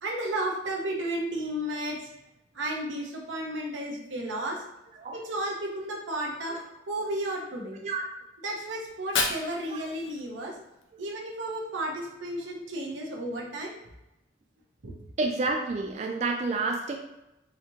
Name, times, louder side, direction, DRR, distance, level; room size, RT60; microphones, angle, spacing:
voice 1, 0.0-2.1 2.5-4.6 5.1-6.6 6.9-7.8 8.4-10.6 11.0-13.8 14.8-15.0, right 1 dB, 85° right, -1 dB, 0.9 m, -33 dB
Fire, 8.8-10.8, left 4 dB, 85° left, 0.6 m, -33 dB
voice 2, 15.2-17.0, right 3 dB, 35° right, 2 dB, 0.3 m, -29 dB
4.1 x 2.9 x 2.8 m, 0.91 s
head